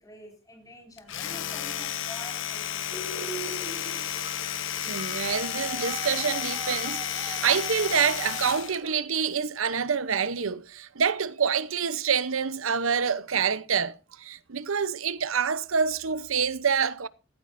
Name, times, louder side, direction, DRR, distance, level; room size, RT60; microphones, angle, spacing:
voice 1, 0.0-3.1, left 1 dB, 20° left, 5.5 m, -47 dB
Domestic sounds home sounds, 1.0-8.8, left 10 dB, 70° left, 1.1 m, -32 dB
sound 1, 2.9-9.0, right 3 dB, 25° right, 3.6 m, -40 dB
voice 2, 4.9-17.1, right 6 dB, 85° right, 0.8 m, -27 dB
17.0 x 14.5 x 2.6 m
head